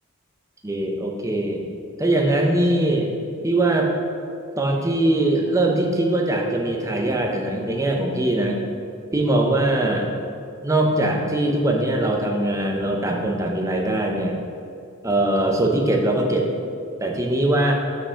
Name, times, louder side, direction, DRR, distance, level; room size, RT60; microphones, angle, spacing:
voice 1, 0.6-1.7 2.0-3.1 3.4-3.9 4.6-8.6 9.1-10.1 10.6-14.4 15.0-16.5 17.0-17.7, right 1 dB, 15° right, 1 dB, 0.7 m, -21 dB
5.3 x 5.1 x 6.4 m, 2.4 s
head